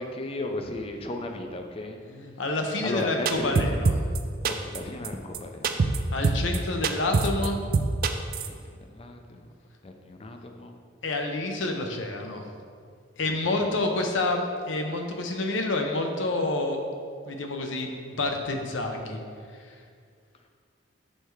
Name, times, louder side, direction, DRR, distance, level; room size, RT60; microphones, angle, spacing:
voice 1, 0.0-2.0 2.8-3.8 4.4-5.8 8.4-9.5 9.8-10.8 13.2-13.7, left 2 dB, 30° left, 4 dB, 0.4 m, -35 dB
voice 2, 2.0-3.9 6.1-7.6 11.0-12.5 13.2-16.8 17.3-19.2, left 2 dB, 85° left, 3 dB, 0.7 m, -28 dB
sound 1, 3.3-4.2 4.5-4.8 5.0-5.1 5.3-5.4 5.6-6.0 6.2-6.6 6.8-7.5 7.7-8.5, right 4 dB, 50° right, 0.3 m, -23 dB
6.5 x 3.3 x 4.6 m, 2.2 s
head